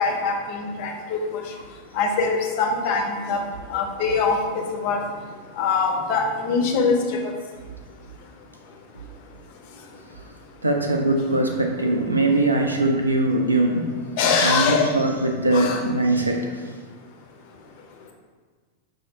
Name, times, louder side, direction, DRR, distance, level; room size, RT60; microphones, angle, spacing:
voice 1, 0.0-1.4 1.9-3.4 3.7-5.0 5.6-7.0 7.2-7.3 14.2-14.9 15.5-15.8, left 4 dB, 50° left, 2 dB, 0.5 m, -23 dB
voice 2, 10.6-13.9 14.4-16.6, right 2 dB, 80° right, 3 dB, 0.4 m, -21 dB
5.4 x 2.1 x 2.6 m, 1.5 s
figure-of-eight pair, 90°, 0 cm